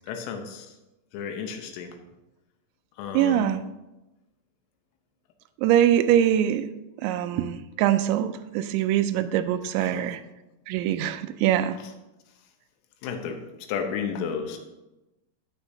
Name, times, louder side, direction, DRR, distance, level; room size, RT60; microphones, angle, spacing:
voice 1, 0.1-0.7 1.1-2.0 3.0-3.6 9.8-10.1 13.0-13.4 13.7-14.6, left 6 dB, 85° left, 5 dB, 3.5 m, -32 dB
voice 2, 3.1-3.6 5.6-6.7 7.0-10.2 10.7-11.8, right 11 dB, 85° right, 11 dB, 2.7 m, -23 dB
18.0 x 6.5 x 2.7 m, 0.99 s
omnidirectional pair, 5.6 m